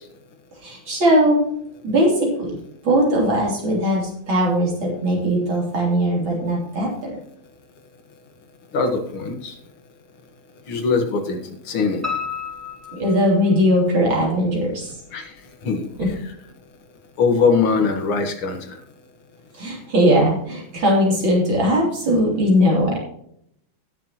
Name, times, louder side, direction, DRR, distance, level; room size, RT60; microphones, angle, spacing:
voice 1, 0.6-1.5 1.8-2.5 2.8-7.2 12.9-14.9 16.0-16.1 19.6-23.0, equal, 65° right, -2 dB, 4.2 m, -19 dB
voice 2, 8.7-9.5 10.7-12.0 15.1-15.3 15.6-15.8 17.2-18.7, left 4 dB, 75° left, 5 dB, 2.4 m, -21 dB
Piano, 12.0-14.0 14.4-15.2 15.6-15.7 16.1-16.2 16.5-16.6, left 6 dB, 10° right, 1.5 m, -32 dB
18.0 x 6.9 x 3.0 m, 0.71 s
omnidirectional pair, 2.3 m